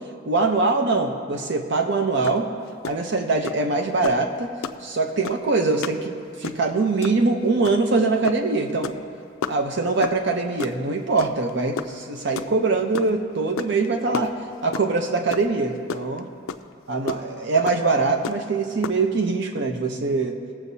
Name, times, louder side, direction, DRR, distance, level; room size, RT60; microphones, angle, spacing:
voice 1, 0.3-2.5 2.8-4.5 4.8-8.9 9.5-14.3 14.6-16.3 16.9-20.4, right 3 dB, 60° right, 4 dB, 0.7 m, -23 dB
sound 1, 2.2-2.4 2.7-2.9 3.4-3.6 4.0-4.2 4.6-4.8 5.2-5.5 5.8-6.0 6.3-6.7 7.0-7.2 7.6-7.9 8.2-8.4 8.7-9.0 9.4-9.6 10.0-10.2 10.6-10.8 11.2-11.5 11.8-13.1 13.6-13.9 14.1-15.0 15.3-15.5 15.8-16.2 16.5-16.6 17.1-17.2 17.7-17.8 18.2-18.5 18.8-19.0, left 6 dB, 85° left, 0.4 m, -30 dB
21.0 x 7.1 x 2.7 m, 2.6 s
head